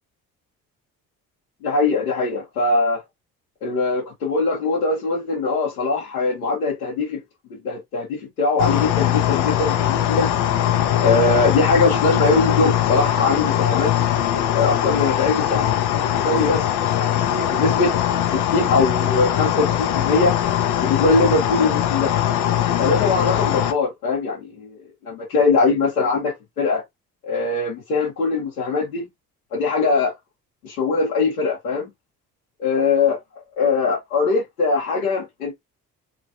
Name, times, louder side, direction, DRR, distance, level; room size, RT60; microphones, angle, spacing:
voice 1, 1.6-3.0 3.6-7.2 7.5-10.3 11.0-13.9 14.5-15.8 16.1-16.6 16.9-18.0 18.3-20.4 20.8-22.1 22.8-26.8 27.2-29.1 29.5-30.1 30.6-31.9 32.6-33.2 33.6-35.5, left 3 dB, 90° left, 1.2 m, -21 dB
sound 1, 8.6-23.7, left 11 dB, 65° left, 0.7 m, -21 dB
3.3 x 3.0 x 2.5 m
hypercardioid pair, 45°, 43 cm